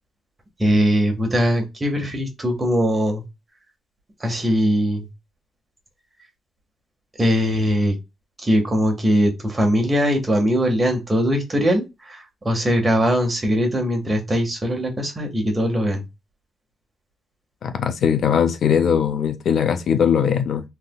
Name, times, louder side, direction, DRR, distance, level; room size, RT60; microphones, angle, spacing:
voice 1, 0.6-3.2 4.2-5.0 7.2-7.9 8.4-16.0, equal, 25° right, 1.4 m, -21 dB
voice 2, 17.6-20.6, left 7 dB, 65° left, 0.5 m, -20 dB
3.5 x 3.3 x 2.2 m
cardioid pair, 85°, 0 cm